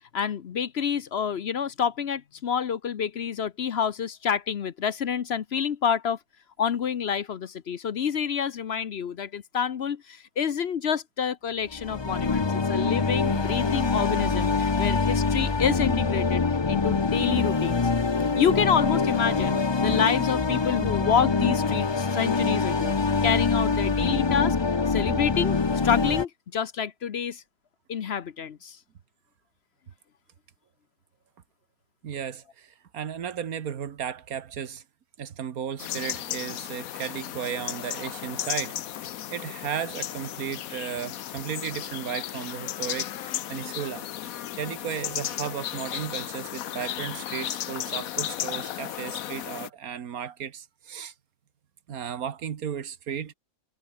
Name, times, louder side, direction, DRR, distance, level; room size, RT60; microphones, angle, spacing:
voice 1, 0.1-6.2 6.6-17.8 18.3-22.9 23.2-24.6 24.9-25.6 25.8-27.4 27.9-28.8, left 7 dB, 55° left, 0.9 m, -28 dB
sound 1, 11.7-26.2, left 4 dB, 25° left, 0.6 m, -25 dB
voice 2, 32.0-34.8 35.2-38.8 39.3-51.1 51.9-53.3, right 8 dB, 90° right, 1.7 m, -35 dB
sound 2, 35.8-49.7, left 12 dB, 80° left, 1.2 m, -34 dB
omnidirectional pair, 1.5 m